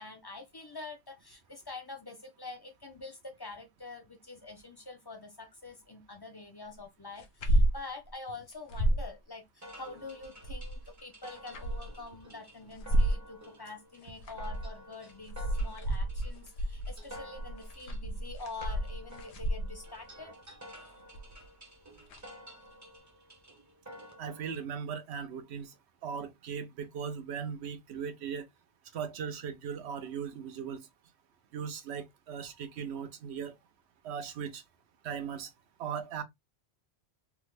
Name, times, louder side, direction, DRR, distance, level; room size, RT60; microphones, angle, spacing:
voice 1, 0.0-20.3 20.8-20.9, left 3 dB, 35° left, 0.4 m, -46 dB
sound 1, 7.2-7.8 8.1-8.2 8.5-9.1 10.2-10.9 11.4-12.0 12.7-13.2 14.0-14.7 15.1-19.9 21.1-21.4 22.1-22.2, right 1 dB, 80° left, 1.0 m, -30 dB
sound 2, 9.6-24.6, equal, 20° right, 0.6 m, -51 dB
voice 2, 24.2-25.7 26.0-28.4 28.9-30.9 31.5-33.5 34.0-34.6 35.0-35.5 35.8-36.2, right 7 dB, 75° right, 0.9 m, -38 dB
3.6 x 2.1 x 3.0 m
omnidirectional pair, 1.1 m